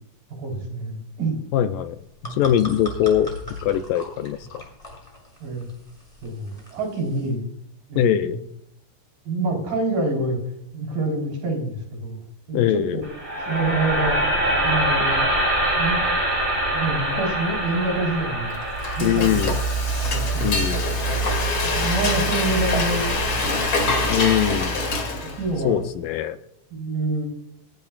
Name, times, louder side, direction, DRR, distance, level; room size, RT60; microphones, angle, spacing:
voice 1, 0.4-1.4 5.4-5.7 6.2-7.4 7.9-8.4 9.3-10.4 10.7-12.2 12.5-13.1 13.5-14.2 14.6-15.4 15.8-16.0 16.7-18.5 19.0-19.5 20.0-20.5 21.6-23.0 25.4-25.8 26.7-27.3, right 2 dB, 65° right, 0 dB, 5.9 m, -26 dB
voice 2, 1.5-2.0 2.2-3.3 3.6-4.6 8.0-8.4 12.5-13.0 19.0-19.6 20.4-20.9 24.1-24.8 25.6-26.4, left 11 dB, 80° left, 9 dB, 2.1 m, -22 dB
sound 1, 1.9-7.3, left 1 dB, 10° left, 5.9 m, -39 dB
sound 2, 13.0-23.1, right 1 dB, 35° right, 6.2 m, -25 dB
Frying (food), 18.5-25.6, left 1 dB, 35° left, 2.9 m, -24 dB
28.0 x 10.5 x 2.4 m, 0.72 s
omnidirectional pair, 4.3 m